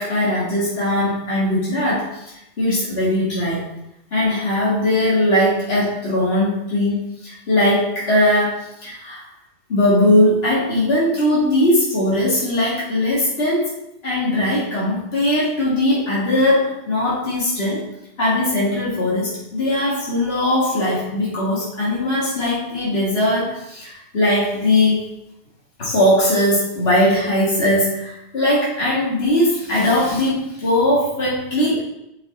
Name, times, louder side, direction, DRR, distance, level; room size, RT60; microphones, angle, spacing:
voice 1, 0.0-2.2 2.6-3.6 4.1-9.3 9.7-13.8 14.0-17.8 18.2-25.1 25.8-31.8, left 1 dB, 60° left, -7 dB, 2.1 m, -19 dB
8.1 x 4.7 x 3.9 m, 0.85 s
omnidirectional pair, 1.2 m